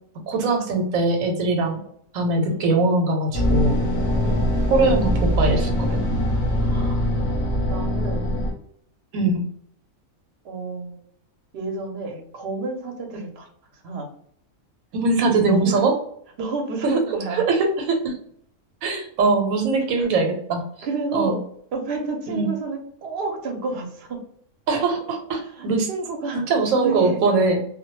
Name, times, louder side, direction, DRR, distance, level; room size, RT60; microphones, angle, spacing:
voice 1, 0.3-1.8 2.1-3.8 4.7-6.0 9.1-9.4 14.9-16.0 16.8-17.0 17.3-18.1 18.8-20.9 21.1-21.4 22.3-22.5 24.7-25.9 26.3-27.6, right 3 dB, 85° right, 3 dB, 1.0 m, -21 dB
sound 1, 3.3-8.5, equal, 60° left, 0.8 m, -22 dB
voice 2, 4.2-4.6 6.6-7.0 7.6-8.3 10.4-11.0 11.5-13.5 13.8-14.1 15.4-15.8 16.4-17.4 20.0-20.1 20.8-21.4 21.7-24.2 25.5-26.5 26.8-27.2, right 3 dB, 60° right, 2 dB, 0.8 m, -30 dB
2.3 x 2.1 x 2.9 m, 0.65 s
omnidirectional pair, 1.4 m